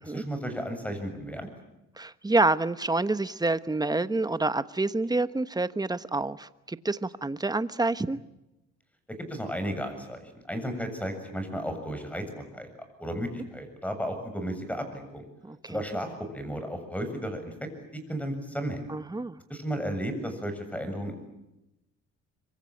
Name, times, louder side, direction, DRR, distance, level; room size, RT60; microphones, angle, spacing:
voice 1, 0.0-1.5 9.3-12.2 12.5-12.7 13.0-15.2 15.6-17.5 17.9-18.8 19.5-21.2, equal, 5° left, 7 dB, 7.4 m, -34 dB
voice 2, 2.0-8.2 15.4-15.8 18.9-19.4, right 2 dB, 15° right, 13 dB, 1.2 m, -28 dB
26.0 x 24.5 x 8.6 m, 0.92 s
cardioid pair, 90°, 30 cm